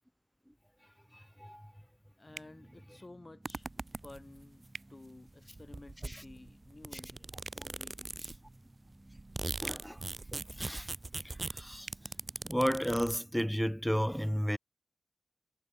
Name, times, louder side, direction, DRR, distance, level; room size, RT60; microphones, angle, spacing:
voice 1, 2.2-3.7 4.0-8.4, left 2 dB, 40° left, 7.3 m, -54 dB
sound 1, 2.3-13.4, right 1 dB, 25° right, 3.4 m, -59 dB
sound 2, 2.3-2.6 4.7-4.9 7.4-7.6 9.6-9.8 11.8-12.0, right 5 dB, 90° right, 0.3 m, -45 dB
sound 3, 3.5-4.4 5.3-5.4 5.6-8.5 8.9-13.2, right 2 dB, 45° right, 0.7 m, -41 dB
voice 2, 9.6-10.0 10.6-10.9 11.2-11.9 12.4-14.6, equal, ahead, 0.3 m, -32 dB
cardioid pair, 40°, 0 cm